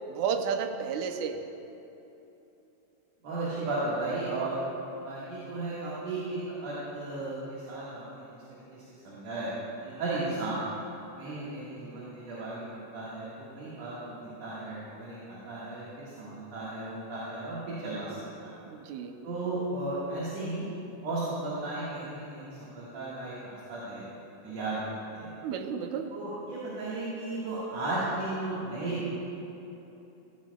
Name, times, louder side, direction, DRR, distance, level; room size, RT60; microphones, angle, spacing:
voice 1, 0.1-1.5 18.7-19.2 25.4-26.2, right 6 dB, 85° right, 7 dB, 2.1 m, -32 dB
voice 2, 3.2-4.6 5.0-8.3 8.7-8.8 9.0-10.6 11.2-14.1 14.4-18.5 19.2-20.7 21.0-24.0 24.4-24.8 25.1-25.3 26.1-29.1, right 2 dB, 65° right, -9 dB, 2.8 m, -35 dB
15.0 x 15.0 x 2.3 m, 3.0 s
omnidirectional pair, 3.3 m